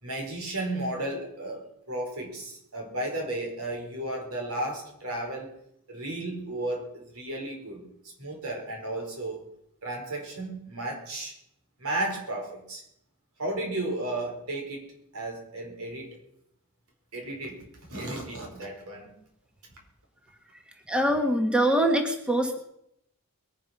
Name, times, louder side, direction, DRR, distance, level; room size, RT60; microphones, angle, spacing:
voice 1, 0.0-5.5 5.9-7.9 8.2-9.4 9.8-11.3 11.8-12.8 13.4-16.2 17.1-19.1, right 1 dB, 75° right, 1 dB, 5.1 m, -34 dB
voice 2, 20.9-22.6, right 1 dB, 5° right, 3 dB, 1.4 m, -23 dB
21.5 x 9.6 x 6.1 m, 0.77 s
head